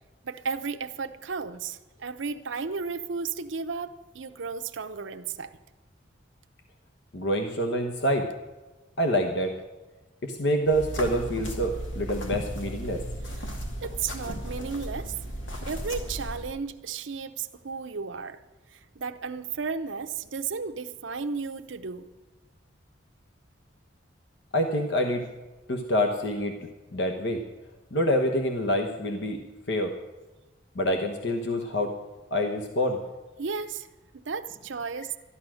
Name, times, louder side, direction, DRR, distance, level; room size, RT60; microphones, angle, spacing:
voice 1, 0.2-5.6 13.8-15.2 15.7-18.4 18.7-22.1 33.4-33.9 34.1-35.2, right 5 dB, 85° right, 8 dB, 0.7 m, -34 dB
voice 2, 7.1-8.3 9.0-9.5 10.2-13.0 24.5-25.2 25.7-27.4 27.9-29.4 29.7-29.9 30.7-31.9 32.3-33.0, equal, 65° left, 4 dB, 1.1 m, -26 dB
sound 1, 10.6-16.5, right 1 dB, 85° left, 2.4 m, -35 dB
13.0 x 11.0 x 6.3 m, 1.2 s
head